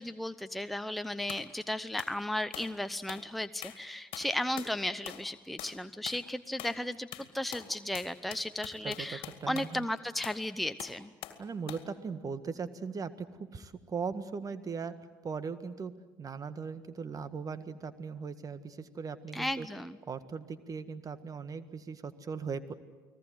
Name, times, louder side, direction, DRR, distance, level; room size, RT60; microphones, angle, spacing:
voice 1, 0.0-11.1 19.3-20.0, left 1 dB, ahead, 10 dB, 0.8 m, -35 dB
sound 1, 1.3-1.5 2.0-2.2 2.5-2.8 3.1-3.3 3.6-3.8 4.1-4.8 5.1-5.3 5.6-5.8 6.1-6.2 6.6-6.8 7.1-9.8 10.2-10.4 10.8-11.4 11.7-11.9, left 12 dB, 55° left, 2.2 m, -44 dB
voice 2, 8.8-9.8 11.4-13.3 13.5-14.9 15.2-15.9 16.2-19.7 20.1-22.7, right 5 dB, 35° right, 12 dB, 1.7 m, -39 dB
30.0 x 19.5 x 7.9 m, 1.3 s
figure-of-eight pair, 60°, 11 cm